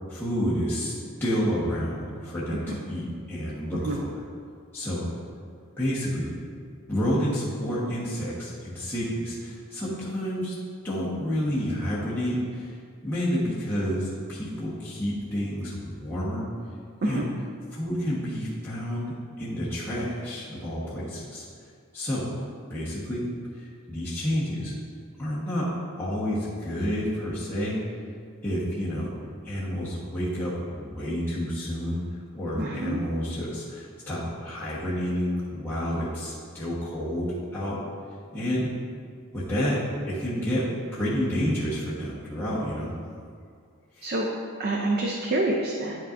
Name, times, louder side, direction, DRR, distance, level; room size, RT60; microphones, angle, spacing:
voice 1, 0.1-4.1 4.7-5.0 5.8-6.3 6.9-10.6 10.8-12.7 13.0-16.5 17.0-17.3 17.7-21.4 21.9-22.3 22.7-23.2 23.5-24.7 25.2-25.7 26.0-27.8 28.4-29.1 29.4-32.0 32.3-37.8 38.3-38.7 39.3-42.9 43.9-44.1, equal, 10° left, -10 dB, 1.1 m, -29 dB
voice 2, 32.5-33.0 44.0-44.3 44.6-46.1, right 2 dB, 45° right, 0 dB, 0.5 m, -27 dB
9.3 x 5.5 x 2.5 m, 2.2 s
head